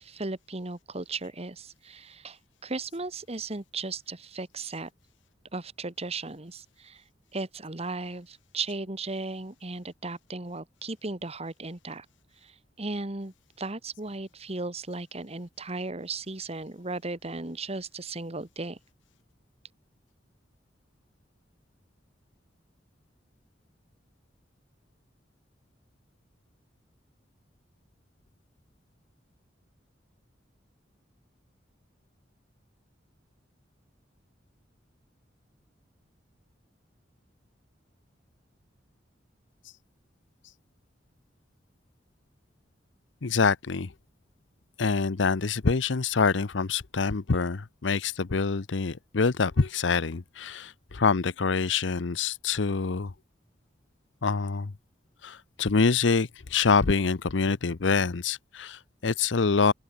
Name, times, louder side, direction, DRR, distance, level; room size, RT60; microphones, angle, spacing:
voice 1, 0.0-4.9 5.5-7.0 7.3-12.1 12.4-18.8, right 3 dB, 35° right, 1.8 m, -36 dB
voice 2, 43.2-43.9 44.8-53.1 54.2-54.7 55.2-59.7, left 4 dB, 80° left, 0.8 m, -26 dB
open air
head